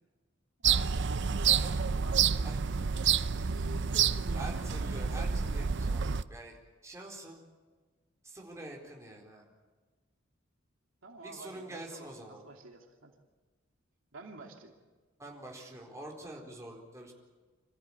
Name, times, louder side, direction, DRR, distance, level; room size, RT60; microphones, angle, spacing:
sound 1, 0.6-6.2, right 7 dB, 60° right, 0.6 m, -29 dB
voice 1, 0.7-4.6 11.0-13.1 14.1-14.7, right 2 dB, 80° right, 2 dB, 2.7 m, -49 dB
voice 2, 4.3-6.6 6.8-7.4 8.2-9.5 11.2-12.4 15.2-17.1, right 1 dB, 15° right, -1 dB, 4.3 m, -45 dB
27.0 x 15.0 x 8.9 m, 1.3 s
head